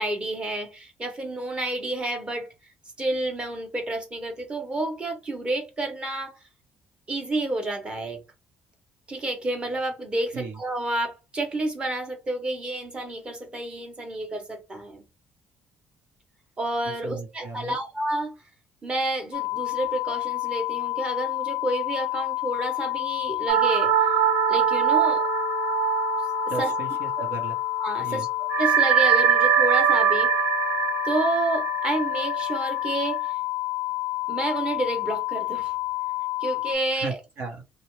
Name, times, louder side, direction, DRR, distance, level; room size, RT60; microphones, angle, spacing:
voice 1, 0.0-2.5 3.0-6.3 7.1-8.2 9.1-15.0 16.6-18.3 18.8-23.9 24.5-25.3 26.6-26.7 27.8-28.3 28.6-30.3 31.0-33.2 34.3-35.7 36.4-37.2, right 1 dB, 25° right, 1.1 m, -29 dB
voice 2, 17.0-17.7 26.5-27.6 28.0-28.3 37.0-37.6, right 4 dB, 65° right, 1.2 m, -35 dB
sound 1, 19.3-36.8, left 19 dB, 80° left, 0.4 m, -29 dB
sound 2, 23.5-27.5 27.8-27.9 28.5-33.2, right 10 dB, 85° right, 0.3 m, -23 dB
2.7 x 2.2 x 3.1 m
cardioid pair, 125°, 4 cm